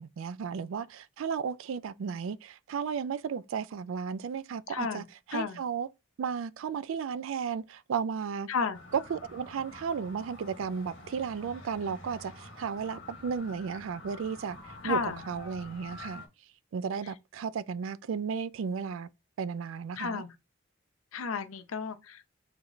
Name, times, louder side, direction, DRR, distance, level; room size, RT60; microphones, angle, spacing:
voice 1, 0.0-5.9 6.2-8.5 9.1-16.2 16.7-19.1 19.4-20.2, right 6 dB, 70° right, 0.3 m, -34 dB
voice 2, 4.7-5.0 5.3-5.6 8.5-8.8 14.8-15.2 20.0-20.3 21.1-22.3, left 5 dB, 80° left, 0.6 m, -32 dB
sound 1, 8.7-16.3, left 2 dB, 60° left, 1.2 m, -48 dB
3.9 x 3.3 x 3.1 m
head